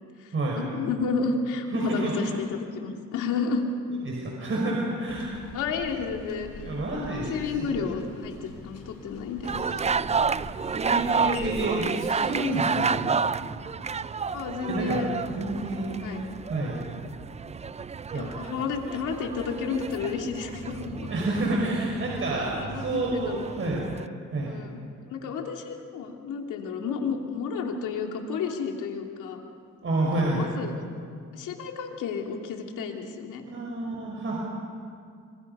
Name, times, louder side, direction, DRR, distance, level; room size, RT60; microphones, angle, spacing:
voice 1, 0.2-3.6 5.5-6.7 7.1-9.9 14.3-15.1 16.0-16.2 18.1-21.1 22.4-23.4 24.5-24.8 25.1-29.4 30.1-30.7 31.3-33.4, left 5 dB, 85° left, 2 dB, 2.8 m, -31 dB
voice 2, 1.7-2.3 4.0-5.3 6.6-7.3 7.6-7.9 10.7-13.1 14.7-15.0 15.4-15.9 16.5-16.8 18.1-18.3 21.1-23.8 24.3-24.5 29.8-30.4 33.5-34.4, right 2 dB, 45° right, -3 dB, 5.5 m, -29 dB
sound 1, 5.1-11.6, left 5 dB, 55° left, 4.7 m, -44 dB
sound 2, 9.4-24.1, right 5 dB, 20° right, 0.5 m, -31 dB
26.5 x 25.0 x 5.6 m, 2.3 s
cardioid pair, 90°, 30 cm